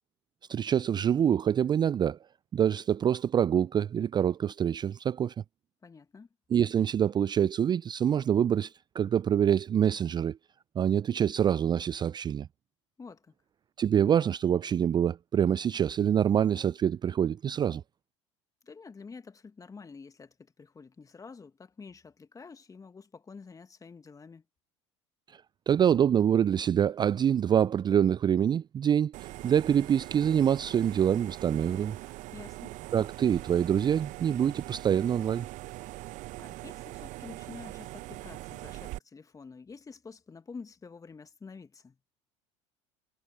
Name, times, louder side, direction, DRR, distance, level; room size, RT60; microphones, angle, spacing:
voice 1, 0.5-2.2 2.5-5.3 6.5-10.4 10.8-12.5 13.8-17.8 25.7-32.0 32.9-35.5, right 9 dB, 25° right, 0.5 m, -25 dB
voice 2, 5.8-6.3 13.0-13.3 18.6-24.4 32.3-32.7 36.4-42.0, left 4 dB, 20° left, 2.1 m, -48 dB
sound 1, 29.1-39.0, right 18 dB, 50° right, 1.1 m, -42 dB
figure-of-eight pair, 70°, 16 cm